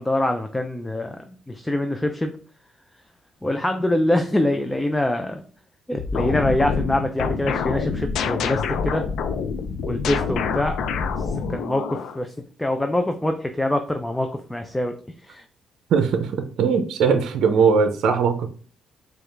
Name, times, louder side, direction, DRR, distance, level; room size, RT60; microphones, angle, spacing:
voice 1, 0.0-2.3 3.4-5.4 5.9-9.0 9.8-10.8 11.2-12.3 12.6-14.9 15.2-15.4, left 1 dB, 10° left, 5 dB, 0.4 m, -24 dB
sound 1, 6.0-12.2, left 5 dB, 75° left, 0.4 m, -26 dB
voice 2, 15.9-18.5, right 5 dB, 75° right, 7 dB, 0.5 m, -20 dB
4.7 x 2.4 x 3.3 m, 0.41 s
cardioid pair, 90°, 0 cm